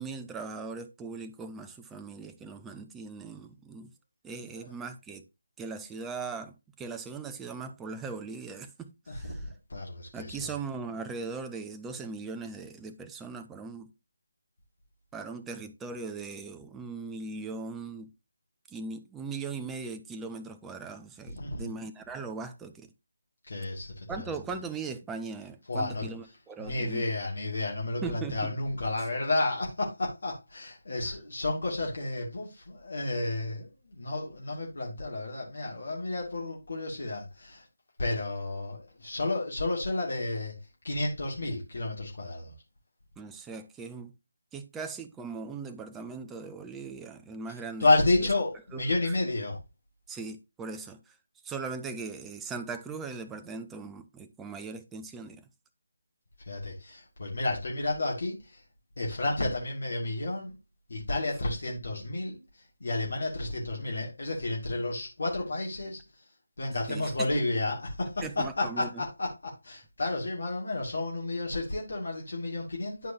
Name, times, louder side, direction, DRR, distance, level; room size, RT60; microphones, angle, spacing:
voice 1, 0.0-3.9 4.2-5.2 5.6-9.4 10.1-13.9 15.1-18.1 18.7-22.9 24.1-27.1 28.0-28.5 29.0-29.1 43.2-44.1 44.5-47.9 48.2-48.3 48.7-49.1 50.1-51.0 51.4-55.4 66.9-67.3 68.2-68.9, right 4 dB, 5° right, 0.5 m, -39 dB
voice 2, 9.1-10.5 21.3-21.7 23.5-24.3 25.7-26.1 26.6-37.6 38.0-40.5 40.8-42.5 47.8-49.6 56.5-58.6 59.0-60.5 60.9-62.4 62.8-66.0 66.6-73.1, left 2 dB, 55° left, 2.3 m, -31 dB
11.0 x 4.6 x 2.7 m
figure-of-eight pair, 155°, 0 cm